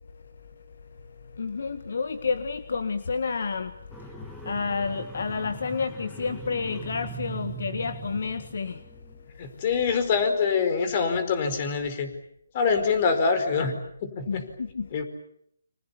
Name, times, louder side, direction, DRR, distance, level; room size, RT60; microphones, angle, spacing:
voice 1, 0.0-9.6 14.3-14.9, left 5 dB, 60° left, 1.7 m, -31 dB
sound 1, 3.9-9.2, right 4 dB, ahead, 2.2 m, -41 dB
voice 2, 9.4-12.1 12.5-14.4 14.9-15.0, left 5 dB, 30° left, 4.7 m, -25 dB
29.5 x 26.0 x 7.1 m
hypercardioid pair, 160°, 0 cm